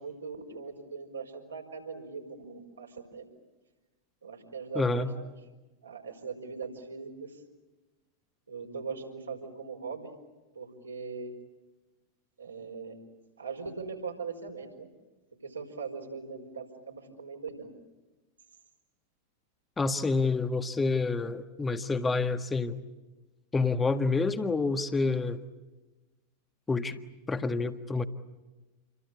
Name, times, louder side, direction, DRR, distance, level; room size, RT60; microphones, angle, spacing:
voice 1, 0.0-3.2 4.2-5.3 5.8-7.4 8.5-10.1 10.6-11.3 12.4-12.9 13.4-14.9 15.4-17.7, right 5 dB, 75° right, 1 dB, 5.2 m, -40 dB
voice 2, 4.8-5.1 19.8-22.8 23.5-25.4 26.7-27.0 27.3-28.1, left 3 dB, 15° left, 9 dB, 1.6 m, -28 dB
28.5 x 23.5 x 8.4 m, 1.1 s
figure-of-eight pair, 90°, 0 cm